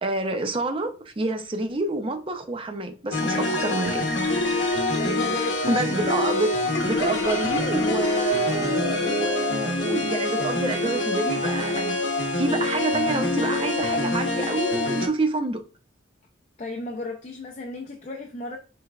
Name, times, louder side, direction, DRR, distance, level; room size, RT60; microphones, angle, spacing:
voice 1, 0.0-4.1 5.7-6.5 6.8-12.0 12.4-15.6, right 2 dB, 25° right, 0.5 m, -27 dB
sound 1, 3.1-15.1, left 2 dB, 60° left, 0.9 m, -25 dB
voice 2, 3.3-3.7 5.0-6.2 16.6-18.6, left 2 dB, 35° left, 0.5 m, -35 dB
5.6 x 3.3 x 2.3 m
head